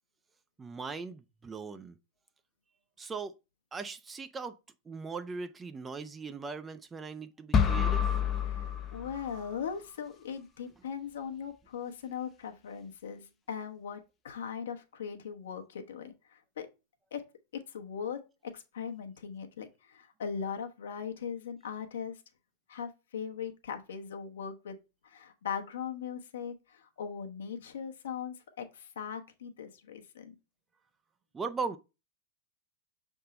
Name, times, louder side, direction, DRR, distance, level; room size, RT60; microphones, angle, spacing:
voice 1, 0.6-2.0 3.0-3.3 3.7-4.6 4.9-8.2 31.3-31.8, right 4 dB, 15° right, 0.5 m, -39 dB
sound 1, 7.5-9.6, left 7 dB, 25° left, 0.7 m, -28 dB
voice 2, 8.5-16.7 17.1-17.2 17.5-18.2 18.5-22.2 22.7-24.8 25.0-30.3, left 7 dB, 60° left, 1.1 m, -39 dB
6.6 x 3.6 x 4.1 m
figure-of-eight pair, 90°, 0 cm